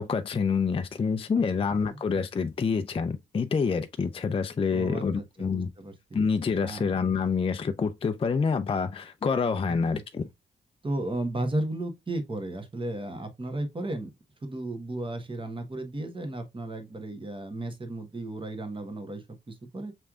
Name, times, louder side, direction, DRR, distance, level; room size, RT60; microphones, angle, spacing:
voice 1, 0.0-5.7 6.1-10.3, left 5 dB, 25° left, 0.4 m, -27 dB
voice 2, 1.5-2.0 4.7-6.2 6.6-6.8 9.9-10.0 10.8-14.1 14.4-19.9, right 2 dB, 25° right, 1.2 m, -34 dB
6.0 x 3.3 x 2.4 m
cardioid pair, 70°, 20 cm